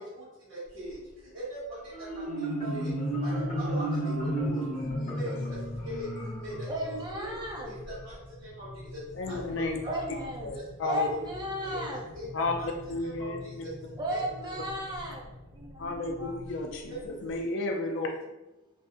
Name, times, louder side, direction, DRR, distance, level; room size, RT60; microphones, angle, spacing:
voice 1, 0.0-7.4 7.6-10.2 10.5-11.2 11.5-11.8 12.1-13.7 14.1-14.2 14.8-14.9 16.9-17.0, equal, 55° right, -14 dB, 1.3 m, -41 dB
sound 1, 0.7-1.2 1.7-2.2 2.9-3.7 4.1-4.5 4.8-17.4, left 1 dB, 90° right, 1.1 m, -47 dB
Marimba xylophone, 1.9-7.5, right 1 dB, 40° left, 0.9 m, -32 dB
voice 2, 6.7-7.8 9.9-10.5 10.8-12.0 14.0-15.2 15.5-16.3 16.6-16.8, equal, 20° right, -2 dB, 0.5 m, -35 dB
voice 3, 9.1-9.8 10.4-11.1 12.3-13.6 15.8-18.1, left 2 dB, 60° left, 3 dB, 0.4 m, -33 dB
2.6 x 2.4 x 2.4 m, 1.0 s
head